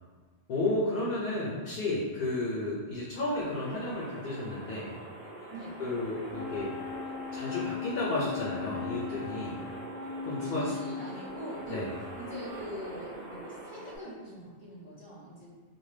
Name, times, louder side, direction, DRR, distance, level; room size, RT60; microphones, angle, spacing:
voice 1, 0.5-5.0 5.8-6.8 7.3-9.6 10.2-10.7 11.7-11.9, left 2 dB, 70° left, -5 dB, 0.8 m, -32 dB
sound 1, 3.4-14.0, right 2 dB, 70° right, 0.8 m, -44 dB
Wind instrument woodwind instrument, 6.3-12.5, left 7 dB, 30° left, 0.3 m, -39 dB
voice 2, 10.2-11.9 12.2-15.5, equal, 25° right, -9 dB, 0.6 m, -43 dB
2.6 x 2.2 x 3.2 m, 1.5 s
omnidirectional pair, 1.1 m